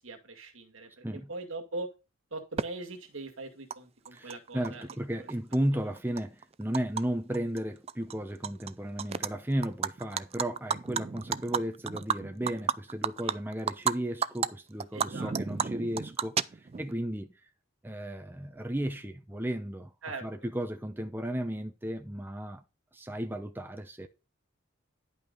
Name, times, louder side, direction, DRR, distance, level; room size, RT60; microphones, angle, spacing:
voice 1, 0.0-1.9 2.3-4.9 5.2-5.3 9.1-9.2 13.2-13.3 14.9-15.3 20.0-20.3, right 2 dB, 70° right, 2.2 m, -41 dB
Animal, 2.6-2.7 3.7-3.8 4.1-4.9 5.3-7.0 7.3-7.6 7.9-8.7 9.0-9.3 9.6-13.9 14.2-14.5 14.8-16.9, right 7 dB, 30° right, 0.4 m, -32 dB
voice 2, 4.1-17.3 17.8-19.9 20.2-22.6 22.9-24.1, right 1 dB, 10° right, 0.8 m, -34 dB
11.0 x 5.6 x 3.9 m
head